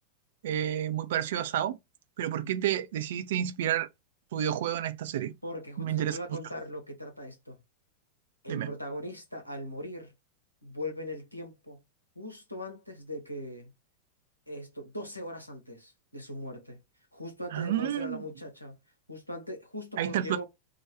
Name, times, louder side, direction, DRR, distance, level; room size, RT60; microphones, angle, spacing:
voice 1, 0.4-1.8 2.2-3.9 4.3-5.3 5.8-6.2 8.5-8.7 17.5-18.2 20.0-20.4, right 11 dB, 55° right, 0.3 m, -30 dB
voice 2, 5.4-7.6 8.4-10.1 10.6-11.8 12.1-13.7 14.5-16.8 17.1-18.8 19.1-20.4, left 1 dB, 90° left, 0.8 m, -40 dB
2.4 x 2.2 x 2.8 m
figure-of-eight pair, 90°, 0 cm